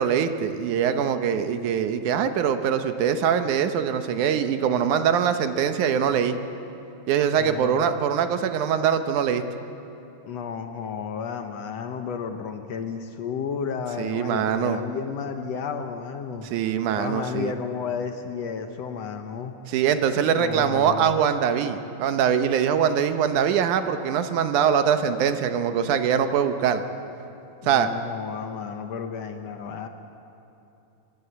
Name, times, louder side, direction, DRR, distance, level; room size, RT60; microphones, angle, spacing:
voice 1, 0.0-6.4 7.1-9.4 14.0-14.8 16.5-17.5 19.7-26.8 27.6-27.9, right 8 dB, 75° right, 8 dB, 2.3 m, -23 dB
voice 2, 7.3-7.8 10.3-16.5 17.0-19.5 20.2-21.1 27.6-29.9, left 6 dB, 65° left, 6 dB, 1.8 m, -32 dB
26.5 x 15.5 x 8.1 m, 2.9 s
omnidirectional pair, 3.6 m